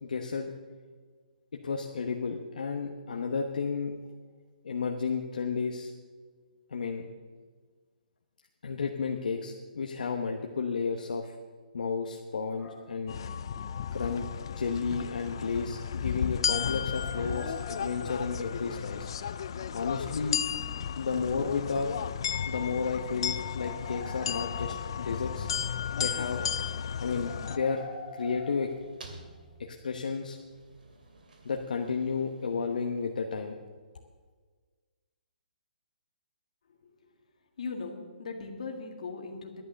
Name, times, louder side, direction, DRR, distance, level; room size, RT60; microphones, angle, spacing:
voice 1, 0.0-0.5 1.5-3.9 4.6-5.9 6.7-7.1 8.6-11.3 11.7-13.2 13.9-19.1 19.7-20.4 21.0-21.9 22.5-25.5 26.0-26.5 27.0-27.9 28.1-28.7 29.6-30.4 31.4-33.6, left 5 dB, 65° left, 2 dB, 1.1 m, -32 dB
sound 1, 12.6-13.0 14.5-14.6 17.0-18.6 21.9-22.0 23.6-25.3 27.2-29.6, left 3 dB, 5° left, 1.5 m, -45 dB
sound 2, 13.1-27.6, left 8 dB, 30° left, 0.4 m, -34 dB
sound 3, 27.4-33.4, right 2 dB, 70° right, 2.5 m, -54 dB
voice 2, 36.7-37.1 37.6-39.6, left 4 dB, 50° left, 3 dB, 1.8 m, -39 dB
11.5 x 11.0 x 6.5 m, 1.5 s
hypercardioid pair, 180°, 5 cm